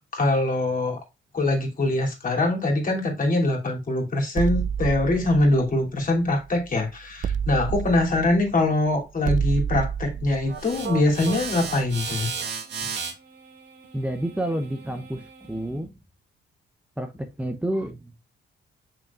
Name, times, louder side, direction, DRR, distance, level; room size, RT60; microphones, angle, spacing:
voice 1, 0.1-1.0 1.3-12.3, left 2 dB, 45° left, 2.9 m, -23 dB
sound 1, 4.4-6.7 7.2-11.9, right 8 dB, 40° right, 0.4 m, -29 dB
sound 2, 10.5-15.7, right 6 dB, 60° right, 2.2 m, -35 dB
voice 2, 13.9-16.0 17.0-18.2, right 1 dB, 5° right, 0.8 m, -30 dB
6.6 x 6.0 x 2.4 m
cardioid pair, 90°, 20 cm